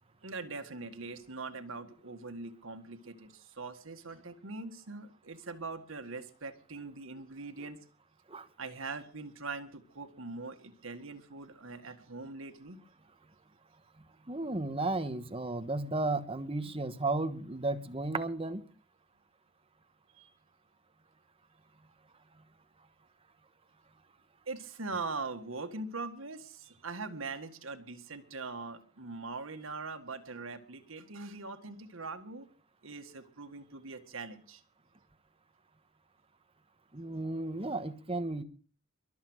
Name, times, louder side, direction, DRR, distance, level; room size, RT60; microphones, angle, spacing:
voice 1, 0.2-7.8 8.6-12.8 20.1-20.3 24.5-32.5 32.8-34.6, right 3 dB, 85° right, 1.8 m, -42 dB
voice 2, 14.3-18.6 36.9-38.4, right 2 dB, 30° right, 1.2 m, -34 dB
23.0 x 7.7 x 6.4 m
head